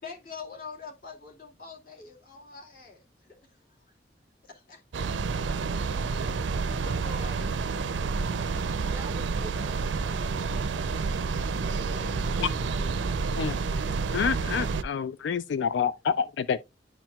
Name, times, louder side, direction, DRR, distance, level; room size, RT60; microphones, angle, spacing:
voice 1, 0.0-3.9 4.4-4.8 6.2-7.5 11.6-12.9, left 4 dB, 50° left, 2.4 m, -46 dB
sound 1, 4.9-14.8, right 4 dB, 90° right, 0.5 m, -29 dB
voice 2, 8.9-10.8 12.3-13.4, right 2 dB, 15° right, 0.4 m, -48 dB
voice 3, 14.1-16.6, left 6 dB, 80° left, 0.3 m, -28 dB
11.0 x 4.5 x 2.3 m
head